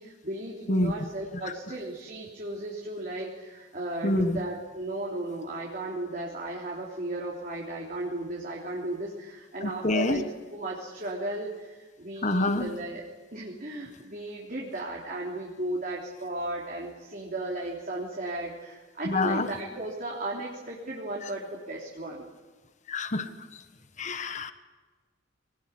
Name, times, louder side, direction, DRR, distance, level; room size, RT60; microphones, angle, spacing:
voice 1, 0.0-13.0 13.3-22.3, right 1 dB, 45° right, -3 dB, 3.5 m, -35 dB
voice 2, 4.0-4.4 9.6-10.2 12.2-12.7 19.0-19.5 22.9-23.6 24.0-24.5, left 2 dB, 35° left, 9 dB, 1.4 m, -27 dB
24.5 x 19.5 x 9.9 m, 1.3 s
head